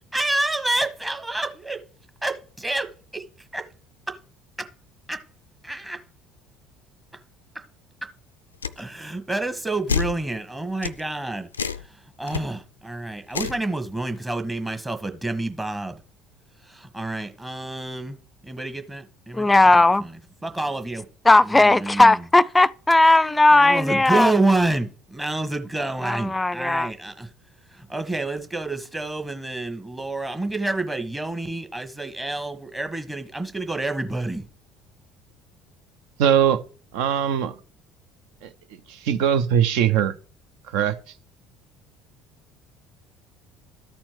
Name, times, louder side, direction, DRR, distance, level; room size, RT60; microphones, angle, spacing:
voice 1, 0.1-1.8 2.2-3.2 3.5-3.7 4.1-4.2 4.6-4.7 5.1-5.2 5.6-6.0 8.0-8.1 8.8-11.5 12.2-16.0 16.7-18.2 18.4-20.1 20.4-21.0 21.4-22.2 23.5-27.3 27.7-34.4, right 2 dB, 10° right, 1.3 m, -28 dB
sound 1, 8.6-8.8 9.9-10.2 10.8-11.0 11.5-11.9 12.3-12.4 13.3-13.6, left 6 dB, 85° left, 0.3 m, -27 dB
voice 2, 19.3-20.1 21.3-24.3 26.0-26.9, left 2 dB, 15° left, 0.4 m, -17 dB
voice 3, 36.2-36.6 36.9-37.5 38.4-40.1 40.7-41.1, right 9 dB, 60° right, 0.6 m, -21 dB
13.0 x 4.4 x 4.7 m
figure-of-eight pair, 60°, 0 cm